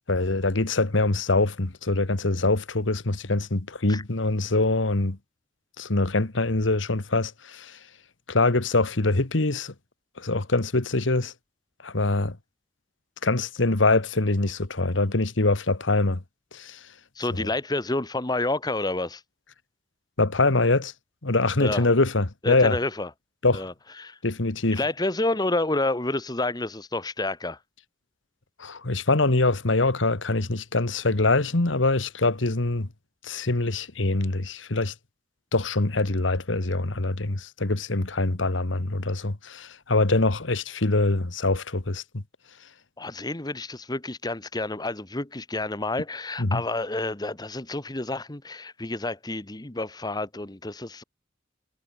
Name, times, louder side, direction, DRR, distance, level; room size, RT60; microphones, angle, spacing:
voice 1, 0.1-5.2 5.8-7.8 8.3-9.7 10.2-11.3 11.8-12.4 13.2-16.2 16.5-16.8 17.4-17.5 20.2-20.9 21.2-22.8 23.4-23.6 24.2-24.8 28.6-32.9 33.2-34.9 35.5-42.2 46.4-46.6, left 2 dB, 85° left, 1.6 m, -24 dB
voice 2, 17.2-19.2 21.6-21.9 22.4-23.1 23.5-23.7 24.0-24.2 24.8-27.6 43.0-51.0, left 2 dB, 20° left, 1.3 m, -29 dB
head